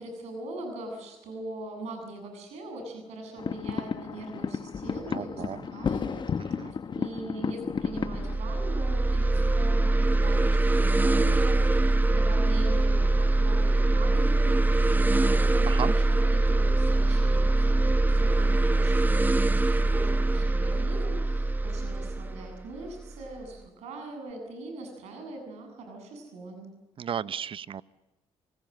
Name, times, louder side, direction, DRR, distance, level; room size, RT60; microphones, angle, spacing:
voice 1, 0.0-6.3 6.6-26.7, right 2 dB, 90° right, 5 dB, 7.8 m, -41 dB
sound 1, 3.4-8.4, left 6 dB, 45° left, 1.0 m, -32 dB
voice 2, 5.1-5.7 6.6-6.7 15.7-15.9 27.0-27.8, right 8 dB, 55° right, 17 dB, 0.8 m, -34 dB
sound 2, 7.9-23.3, right 2 dB, 15° right, 0.9 m, -23 dB
27.5 x 19.5 x 7.7 m, 1.1 s
cardioid pair, 80°, 11 cm